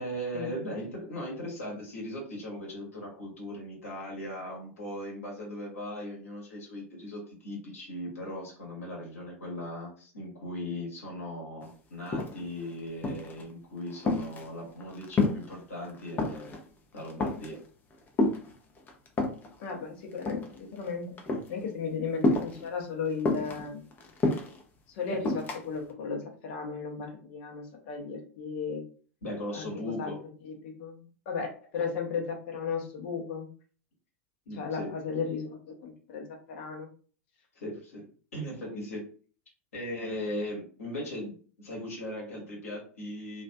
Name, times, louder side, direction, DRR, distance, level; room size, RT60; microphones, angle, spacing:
voice 1, 0.0-16.5 16.9-17.6 29.2-30.2 34.5-34.9 37.5-38.0 38.3-39.0 39.7-43.4, equal, 75° left, -3 dB, 1.1 m, -38 dB
sound 1, 11.6-11.7 12.0-12.6 13.0-13.4 13.8-15.5 15.8-16.6 17.0-17.6 18.2-19.5 20.1-20.9 21.2-21.5 22.2-22.7 23.2-24.6 25.2-25.6, left 2 dB, 25° left, 0.5 m, -29 dB
voice 2, 19.6-21.2 21.5-23.8 24.9-28.8 29.5-29.7 30.0-30.1 30.4-33.5 34.5-36.9 38.7-38.8, left 5 dB, 55° left, 2 dB, 0.7 m, -35 dB
2.4 x 2.3 x 2.2 m, 0.41 s
figure-of-eight pair, 85°, 8 cm